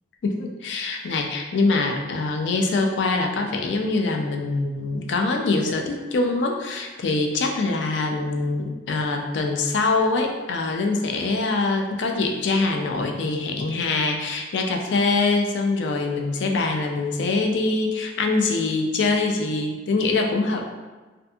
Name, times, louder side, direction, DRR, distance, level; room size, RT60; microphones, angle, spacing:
voice 1, 0.2-20.7, left 3 dB, 65° left, 2 dB, 0.3 m, -24 dB
2.6 x 2.5 x 2.2 m, 1.3 s
head